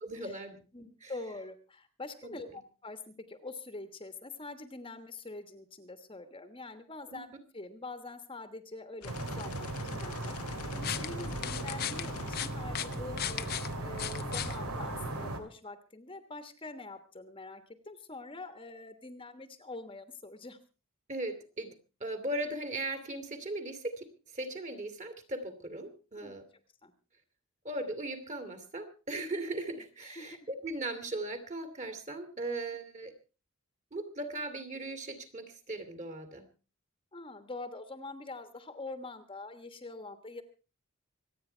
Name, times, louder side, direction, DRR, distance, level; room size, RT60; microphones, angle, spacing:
voice 1, 0.0-0.6 1.0-1.1 2.2-2.4 7.1-7.2 21.1-21.7 22.0-24.1 24.3-26.4 27.6-33.1 33.9-36.5, right 2 dB, 35° right, 8 dB, 2.4 m, -38 dB
voice 2, 0.7-13.5 13.8-20.6 26.1-26.3 26.8-26.9 29.7-30.4 37.1-40.4, left 2 dB, 25° left, 9 dB, 1.3 m, -45 dB
sound 1, 9.0-13.2, left 5 dB, 80° left, 0.9 m, -46 dB
sound 2, 9.0-15.4, right 2 dB, 85° right, 2.4 m, -38 dB
sound 3, 10.5-15.4, left 8 dB, 45° left, 0.8 m, -39 dB
25.5 x 9.3 x 4.4 m, 0.34 s
head